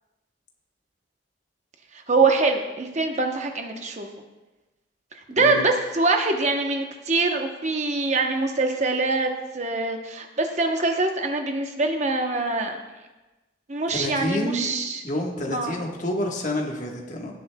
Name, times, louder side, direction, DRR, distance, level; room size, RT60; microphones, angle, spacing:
voice 1, 2.1-4.1 5.3-12.8 13.7-15.0 15.5-15.8, right 3 dB, 35° right, 4 dB, 0.9 m, -24 dB
voice 2, 13.9-14.7 15.0-17.3, left 1 dB, 40° left, 0 dB, 1.4 m, -28 dB
17.0 x 7.7 x 2.3 m, 1.1 s
head